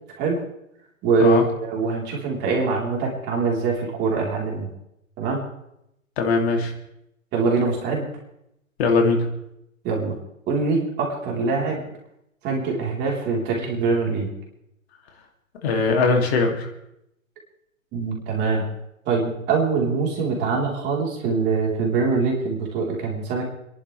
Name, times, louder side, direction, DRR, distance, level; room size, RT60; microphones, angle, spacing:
voice 1, 1.0-4.7 5.2-5.4 7.3-8.1 9.8-10.2 10.5-11.8 12.4-14.3 17.9-18.7 19.1-23.5, right 4 dB, 25° right, -1 dB, 3.8 m, -23 dB
voice 2, 6.2-6.7 8.8-9.3 15.6-16.7, left 4 dB, 50° left, 2 dB, 2.7 m, -20 dB
28.5 x 11.5 x 3.3 m, 0.80 s
hypercardioid pair, 130°, 41 cm